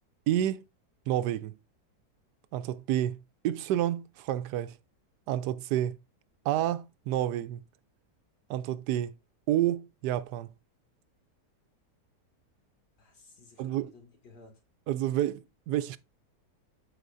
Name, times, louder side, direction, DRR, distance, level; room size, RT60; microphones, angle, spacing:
voice 1, 0.3-0.7 1.1-1.5 2.5-4.7 5.3-6.0 6.4-7.6 8.5-9.1 9.5-10.5 13.6-13.9 14.9-16.0, right 12 dB, 80° right, 1.2 m, -29 dB
voice 2, 13.0-14.6 15.7-16.0, left 3 dB, 70° left, 2.7 m, -56 dB
13.0 x 4.7 x 2.6 m
omnidirectional pair, 1.8 m